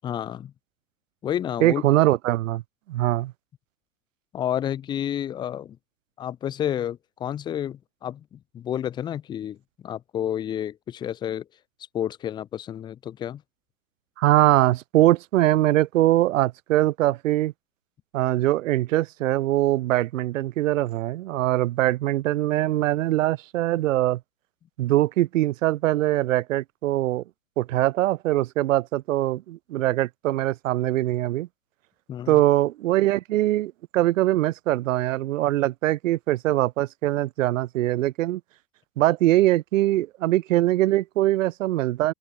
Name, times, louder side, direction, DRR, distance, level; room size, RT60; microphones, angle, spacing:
voice 1, 0.0-0.5 1.2-1.8 4.3-5.8 6.2-9.6 9.8-11.4 11.9-13.4 32.1-32.4, left 10 dB, 10° left, 0.7 m, -30 dB
voice 2, 1.6-2.6 2.9-3.3 14.2-17.5 18.1-24.2 24.8-27.2 27.6-31.5 32.3-38.4 39.0-42.1, right 15 dB, 50° right, 1.1 m, -22 dB
open air
hypercardioid pair, 145°, 49 cm